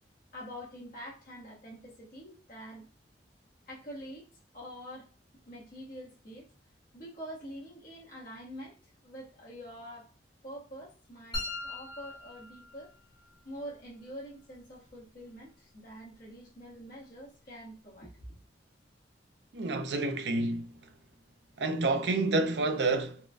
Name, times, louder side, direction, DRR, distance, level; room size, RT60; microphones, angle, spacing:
voice 1, 0.3-2.9 3.7-5.1 5.4-6.5 6.9-10.1 10.4-12.9 13.4-18.3, equal, 50° left, 1.2 m, -46 dB
sound 1, 11.3-13.3, left 2 dB, 25° left, 1.0 m, -40 dB
voice 2, 19.5-20.7 21.6-23.2, right 2 dB, 65° right, 0.5 m, -29 dB
4.1 x 2.2 x 2.4 m
head